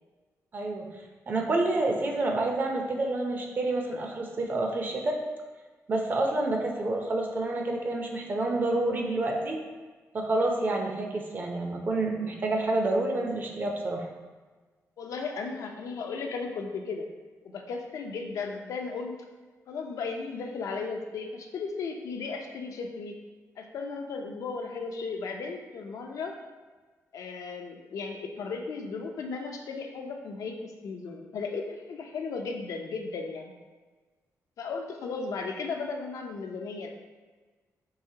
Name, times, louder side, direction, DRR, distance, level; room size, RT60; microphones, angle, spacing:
voice 1, 0.5-0.9 1.3-5.2 5.9-9.6 10.1-14.1, right 2 dB, 35° right, 1 dB, 0.5 m, -28 dB
voice 2, 15.0-17.1 17.4-19.2 19.7-23.2 23.6-26.4 27.1-33.5 34.6-36.9, left 4 dB, 70° left, 3 dB, 0.4 m, -35 dB
4.7 x 3.2 x 2.8 m, 1.3 s
wide cardioid pair, 165°, 6 cm